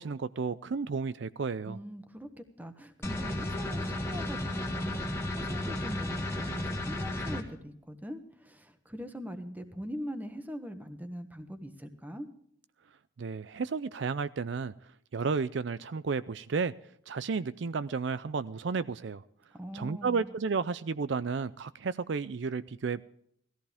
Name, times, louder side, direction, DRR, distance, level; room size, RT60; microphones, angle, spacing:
voice 1, 0.0-1.8 13.2-14.7 15.1-16.7 17.1-19.2 19.7-23.0, right 5 dB, 65° right, 0.4 m, -32 dB
voice 2, 1.7-12.3 19.5-20.3, equal, 10° right, 1.3 m, -42 dB
sound 1, 3.0-7.4, left 1 dB, 15° left, 1.7 m, -33 dB
18.5 x 14.5 x 3.5 m
head